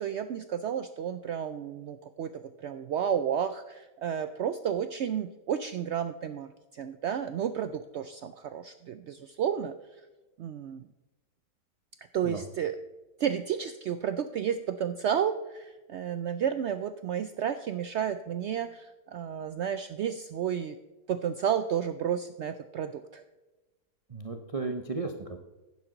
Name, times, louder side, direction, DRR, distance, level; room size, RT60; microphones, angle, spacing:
voice 1, 0.0-9.7 10.4-10.8 12.1-12.8 13.2-20.8 21.1-23.2, right 8 dB, 85° right, 10 dB, 0.6 m, -32 dB
voice 2, 24.1-25.4, right 3 dB, 35° right, 5 dB, 0.5 m, -34 dB
11.5 x 9.7 x 3.9 m, 1.1 s
omnidirectional pair, 1.7 m